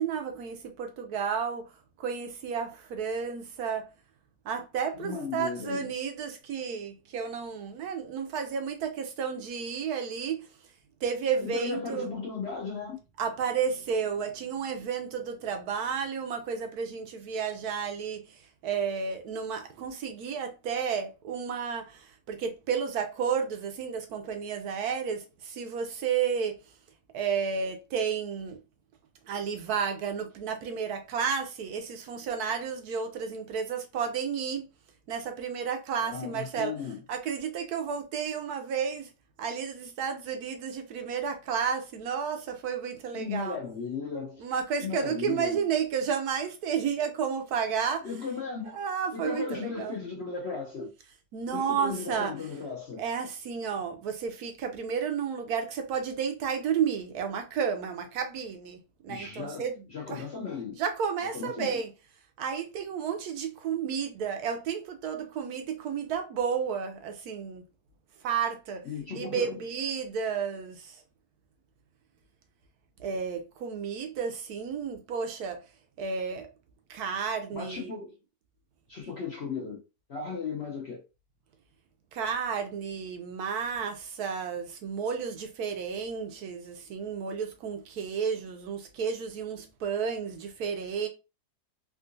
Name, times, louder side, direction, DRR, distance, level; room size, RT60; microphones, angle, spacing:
voice 1, 0.0-3.9 4.4-10.7 11.0-12.1 13.2-26.8 27.1-28.6 29.2-34.6 35.1-36.7 37.1-39.1 39.4-43.6 44.4-48.1 48.7-50.0 51.3-52.5 53.0-60.3 60.8-61.9 62.4-67.6 68.2-68.9 69.1-71.0 73.0-75.6 76.0-76.5 76.9-77.9 82.1-91.1, right 6 dB, 75° right, 1.0 m, -32 dB
voice 2, 4.9-5.9 11.3-13.0 36.0-36.9 43.1-44.5 44.8-45.6 48.0-48.8 49.1-50.9 51.5-53.0 59.1-59.6 59.9-60.8 61.3-61.8 68.8-69.6 77.5-78.1 78.9-79.8 80.1-81.0, left 5 dB, 55° left, 0.7 m, -36 dB
3.6 x 2.4 x 2.6 m
omnidirectional pair, 1.8 m